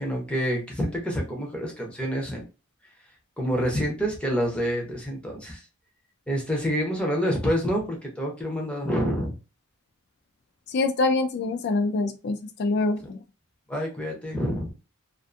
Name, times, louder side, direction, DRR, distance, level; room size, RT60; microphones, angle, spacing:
voice 1, 0.0-2.5 3.4-5.6 6.3-9.4 13.7-14.7, equal, 5° left, 0 dB, 0.6 m, -27 dB
voice 2, 10.7-13.2, left 3 dB, 50° left, 7 dB, 0.3 m, -25 dB
2.5 x 2.4 x 2.4 m, 0.31 s
head